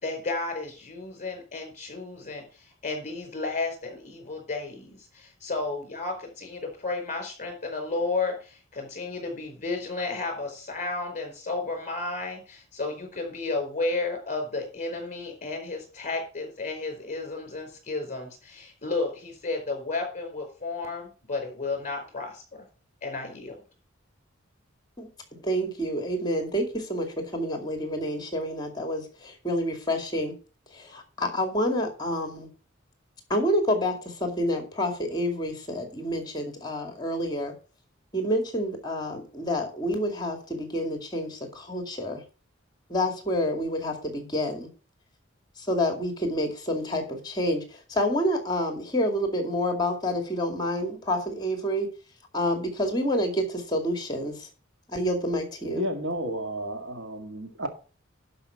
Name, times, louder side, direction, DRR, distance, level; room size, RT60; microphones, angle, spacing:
voice 1, 0.0-22.4 23.0-23.6, left 3 dB, 40° left, 4.5 m, -32 dB
voice 2, 25.0-27.1 27.3-30.3 30.7-32.5 33.3-37.5 38.1-42.2 42.9-44.7 45.6-51.9 52.3-54.5 54.9-55.8, equal, 20° left, 2.2 m, -28 dB
voice 3, 55.8-57.7, equal, 75° right, 2.1 m, -32 dB
11.5 x 5.5 x 5.8 m
head